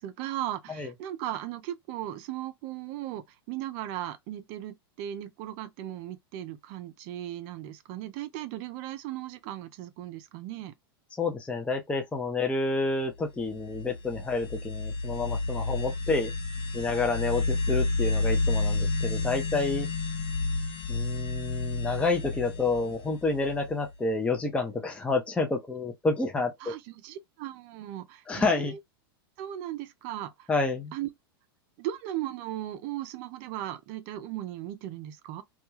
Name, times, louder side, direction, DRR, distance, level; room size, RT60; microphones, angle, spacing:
voice 1, 0.0-10.7 26.6-28.8 29.4-30.5 30.9-31.1 31.8-35.4, right 13 dB, 50° right, 0.5 m, -37 dB
voice 2, 11.2-16.3 16.7-19.9 20.9-26.5 28.3-28.7 30.5-30.9, left 3 dB, 10° left, 0.5 m, -29 dB
sound 1, 13.4-23.9, left 3 dB, 45° left, 0.7 m, -30 dB
2.3 x 2.2 x 3.0 m
hypercardioid pair, 105°, 13 cm